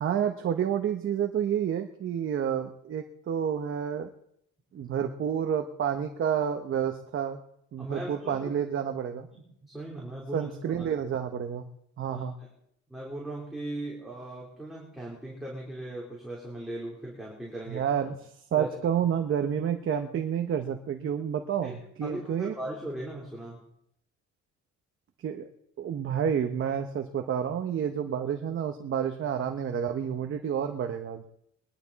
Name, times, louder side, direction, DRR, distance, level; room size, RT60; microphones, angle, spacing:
voice 1, 0.0-4.1 4.7-7.4 7.7-9.3 10.3-11.6 12.0-12.3 17.7-18.1 18.5-21.7 22.0-22.5 25.2-25.5 25.8-31.3, right 8 dB, 45° right, 5 dB, 0.9 m, -29 dB
voice 2, 7.8-8.5 9.3-10.8 12.1-12.5 12.9-17.8 18.6-18.7 21.6-21.7 22.0-23.6, right 1 dB, ahead, -5 dB, 3.3 m, -38 dB
21.5 x 11.0 x 4.1 m, 0.74 s
cardioid pair, 145°, 30 cm